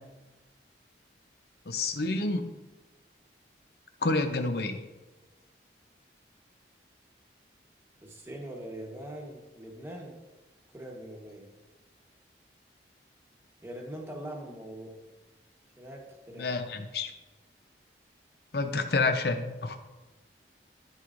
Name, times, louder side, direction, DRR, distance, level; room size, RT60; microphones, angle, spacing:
voice 1, 1.7-2.6 4.0-4.8 16.4-17.1 18.5-19.8, left 3 dB, 60° left, 7 dB, 0.7 m, -29 dB
voice 2, 8.0-10.1 10.7-11.6 13.6-15.0 15.8-16.6, right 1 dB, 15° right, 0 dB, 1.1 m, -42 dB
13.5 x 4.7 x 2.6 m, 1.1 s
head